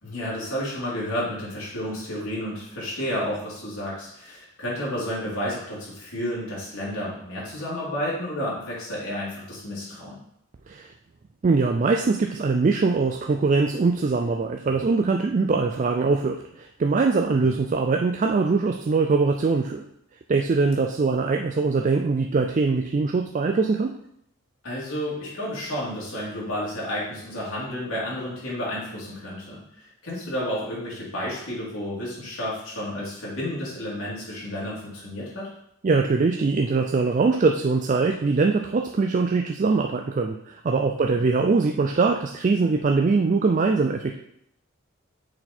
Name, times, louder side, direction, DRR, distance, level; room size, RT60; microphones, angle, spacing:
voice 1, 0.0-10.2 17.4-17.6 24.6-35.5 41.0-41.2, equal, 85° left, -6 dB, 2.8 m, -31 dB
voice 2, 11.4-19.9 20.3-24.0 35.8-44.2, right 4 dB, 35° right, 4 dB, 0.3 m, -22 dB
6.7 x 4.1 x 4.3 m, 0.75 s
head